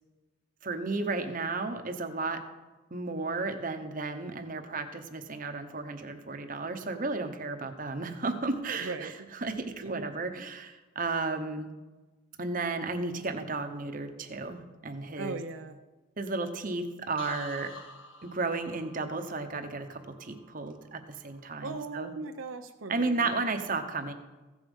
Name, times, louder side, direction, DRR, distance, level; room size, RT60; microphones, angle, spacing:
voice 1, 0.6-2.4 2.9-9.1 9.4-11.7 12.4-15.4 16.2-17.7 18.2-22.1 22.9-24.1, right 3 dB, 40° right, 7 dB, 1.0 m, -33 dB
voice 2, 8.8-9.1 9.8-10.1 15.2-15.8 21.6-23.3, right 3 dB, 80° right, 6 dB, 0.7 m, -38 dB
sound 1, 17.2-21.0 21.3-21.8, left 2 dB, 70° left, 1.2 m, -48 dB
15.5 x 7.2 x 5.4 m, 1.2 s
head